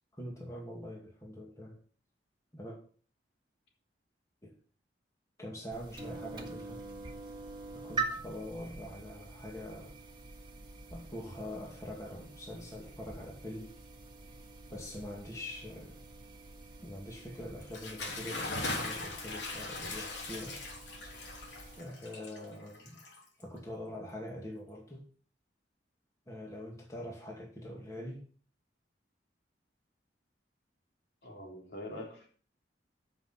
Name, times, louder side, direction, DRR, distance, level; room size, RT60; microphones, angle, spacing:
voice 1, 0.1-1.8 2.5-2.8 4.4-4.5 5.4-6.8 7.7-9.9 10.9-13.7 14.7-16.1 16.8-20.6 21.8-23.0 23.4-25.0 26.3-28.2, left 1 dB, 20° left, 2.3 m, -44 dB
sound 1, 5.7-21.8, right 3 dB, 25° right, 1.6 m, -45 dB
Bathtub (filling or washing) / Splash splatter, 17.6-23.6, left 2 dB, 85° left, 3.2 m, -40 dB
voice 2, 31.2-32.3, left 1 dB, 65° left, 3.6 m, -44 dB
14.0 x 6.1 x 4.2 m
head